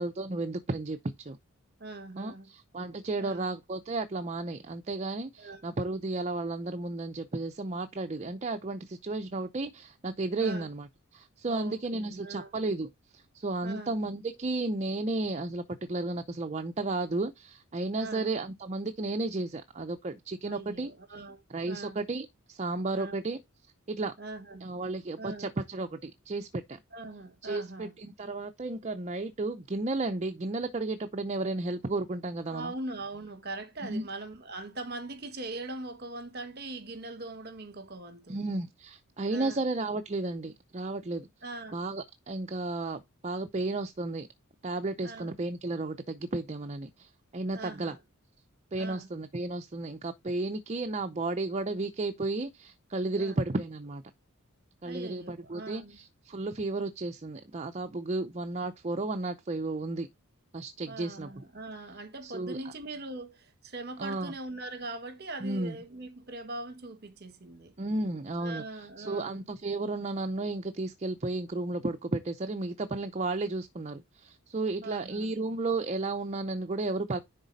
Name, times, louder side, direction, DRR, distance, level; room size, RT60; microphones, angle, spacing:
voice 1, 0.0-1.4 2.2-20.9 21.5-23.4 23.9-24.1 24.6-26.8 27.4-32.7 33.8-34.0 38.3-41.3 41.7-44.3 44.6-48.0 48.7-54.0 54.8-60.1 60.5-61.3 62.2-62.6 64.0-64.3 65.4-65.8 67.8-77.2, right 2 dB, 30° right, 0.6 m, -33 dB
voice 2, 1.8-2.5 3.2-3.5 5.4-5.6 10.4-10.7 11.4-12.5 13.6-13.9 18.0-18.3 20.4-21.4 21.7-22.0 22.9-23.2 24.2-24.6 25.2-25.5 26.9-27.9 32.5-38.4 39.3-39.6 41.4-41.8 45.0-45.3 47.5-48.0 48.8-49.1 53.2-53.4 54.8-56.0 60.9-67.7 68.4-69.4 74.8-75.3, right 2 dB, 45° right, 1.6 m, -41 dB
10.5 x 4.1 x 4.0 m
head